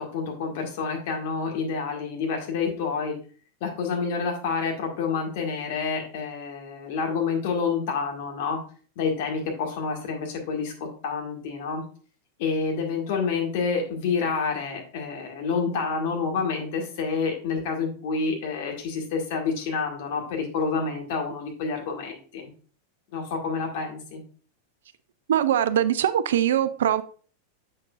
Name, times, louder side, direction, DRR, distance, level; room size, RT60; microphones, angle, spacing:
voice 1, 0.0-3.1 3.6-8.6 8.9-11.8 12.4-22.5 23.1-24.2, left 5 dB, 50° left, 1.8 m, -28 dB
voice 2, 25.3-27.0, right 10 dB, 60° right, 0.4 m, -22 dB
7.3 x 6.4 x 2.5 m
figure-of-eight pair, 90°, 0 cm